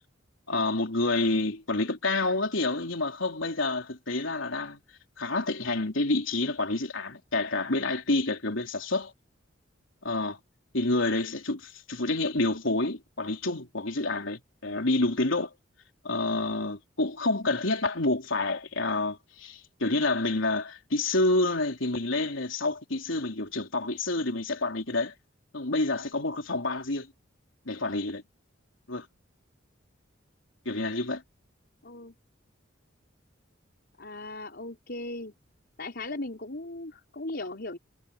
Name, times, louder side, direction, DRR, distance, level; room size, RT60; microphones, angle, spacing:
voice 1, 0.5-4.8 5.2-9.1 10.0-10.4 10.7-15.5 16.0-25.1 25.5-27.1 27.7-28.2 28.9-29.1 30.7-31.2, left 2 dB, 80° left, 3.6 m, -28 dB
voice 2, 31.8-32.1 34.0-35.3 35.8-37.8, left 2 dB, 55° left, 4.9 m, -37 dB
head